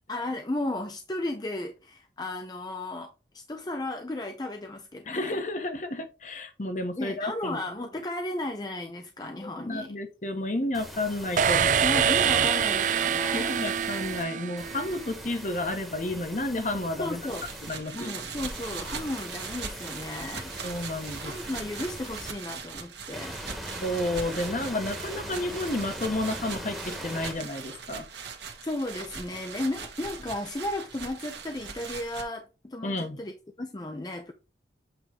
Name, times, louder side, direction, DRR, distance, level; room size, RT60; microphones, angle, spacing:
voice 1, 0.1-5.4 7.0-10.0 11.8-13.6 17.0-17.5 17.9-20.5 20.8-21.0 21.2-23.4 28.6-34.3, left 1 dB, 25° left, 0.5 m, -34 dB
voice 2, 5.1-7.6 9.4-12.0 13.3-17.3 17.6-18.2 20.6-21.3 23.8-28.1 32.8-33.2, left 1 dB, 45° left, 1.0 m, -31 dB
sound 1, 10.7-14.2 14.6-17.7 18.4-22.3 23.1-27.3, equal, ahead, 1.2 m, -41 dB
sound 2, 11.4-15.2, right 8 dB, 45° right, 0.3 m, -25 dB
sound 3, 17.2-32.2, right 5 dB, 80° right, 1.4 m, -40 dB
7.9 x 3.1 x 4.7 m
head